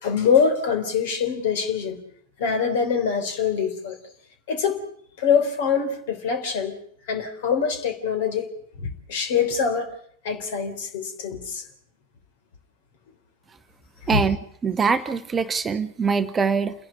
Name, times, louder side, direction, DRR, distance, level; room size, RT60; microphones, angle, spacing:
voice 1, 0.0-2.0 2.4-4.0 4.5-4.8 5.2-6.8 7.1-8.5 8.8-9.9 10.2-11.6 14.0-14.2, left 6 dB, 55° left, 3.5 m, -24 dB
voice 2, 14.6-16.7, right 5 dB, 20° right, 0.9 m, -23 dB
29.5 x 11.0 x 8.6 m
figure-of-eight pair, 90°, 0 cm